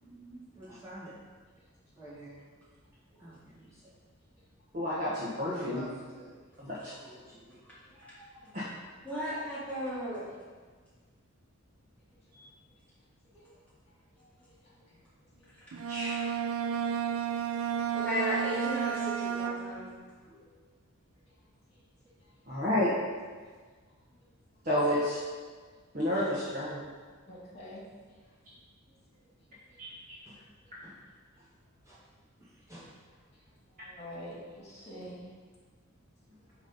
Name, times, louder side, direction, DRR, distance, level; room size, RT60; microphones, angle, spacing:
voice 1, 0.0-0.4 7.6-8.4 9.0-10.3 13.3-13.5 17.9-19.9 20.3-20.5, equal, 5° left, -10 dB, 1.9 m, -36 dB
voice 2, 0.5-1.1 2.0-2.4 3.2-3.9 5.4-6.4 7.0-7.9 8.6-8.7 30.2-30.4 30.8-30.9 31.4-31.5 31.8-32.0 32.4-32.9, right 1 dB, 15° right, -9 dB, 1.8 m, -47 dB
voice 3, 4.7-5.8 6.6-6.9 8.5-8.6 15.9-16.3 22.5-22.9 24.6-25.2 25.9-26.8 29.8-30.1, left 1 dB, 40° right, -9 dB, 1.3 m, -30 dB
voice 4, 7.7-8.0 8.4-8.6 14.6-15.0 15.4-15.5 17.2-17.4 19.6-19.7 21.7-21.8 27.3-27.8 28.9-29.0 33.3-33.4 33.7-35.2, equal, 35° left, -5 dB, 2.2 m, -47 dB
Bowed string instrument, 15.7-20.0, right 8 dB, 85° right, 0.5 m, -32 dB
9.2 x 3.2 x 5.2 m, 1.5 s
head